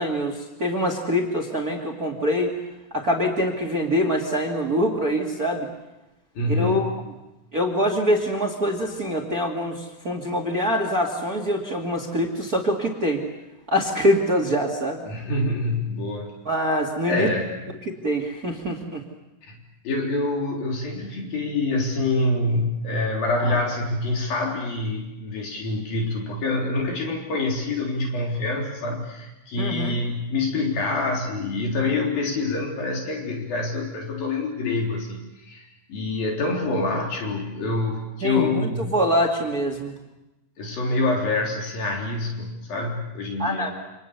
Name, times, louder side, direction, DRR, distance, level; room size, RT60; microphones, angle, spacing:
voice 1, 0.0-2.5 2.9-5.7 6.5-6.9 7.5-13.2 13.7-15.0 16.5-17.3 17.9-19.0 23.4-23.5 29.6-30.0 38.2-39.9 43.4-43.7, equal, 25° right, 2 dB, 2.7 m, -24 dB
voice 2, 6.4-6.9 15.0-16.3 17.1-17.5 19.5-19.6 19.8-39.0 40.6-43.7, left 2 dB, 80° left, 0 dB, 5.6 m, -26 dB
29.0 x 27.5 x 7.0 m, 0.98 s
omnidirectional pair, 4.0 m